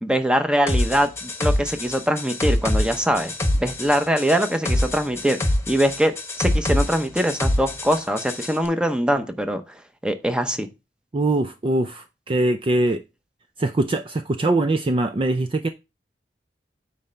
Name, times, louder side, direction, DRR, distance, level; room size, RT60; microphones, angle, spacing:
voice 1, 0.0-3.3 3.6-5.4 5.7-9.6 10.0-10.7, equal, 5° right, 0.8 m, -22 dB
sound 1, 0.7-8.5, left 1 dB, 15° left, 1.2 m, -25 dB
voice 2, 11.1-13.0 13.6-15.7, right 2 dB, 30° right, 0.4 m, -22 dB
9.1 x 3.2 x 5.6 m
head